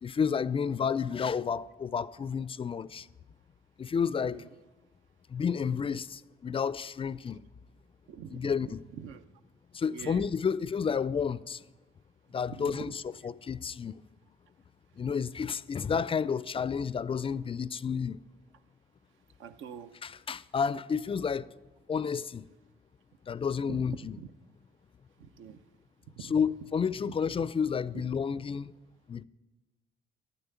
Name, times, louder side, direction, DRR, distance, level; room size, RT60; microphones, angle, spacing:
voice 1, 0.0-3.1 3.8-4.4 5.3-7.4 8.3-8.8 9.7-11.6 12.3-14.0 15.0-18.2 20.0-21.5 21.9-22.5 23.3-24.2 26.2-28.7 29.1-29.2, left 6 dB, 30° left, 0.3 m, -31 dB
voice 2, 8.1-9.2 9.9-10.3 12.6-12.9 19.4-19.9 23.7-24.3 25.2-25.6 26.2-26.3, right 7 dB, 80° right, 0.8 m, -44 dB
11.5 x 7.0 x 9.3 m
cardioid pair, 90°, 20 cm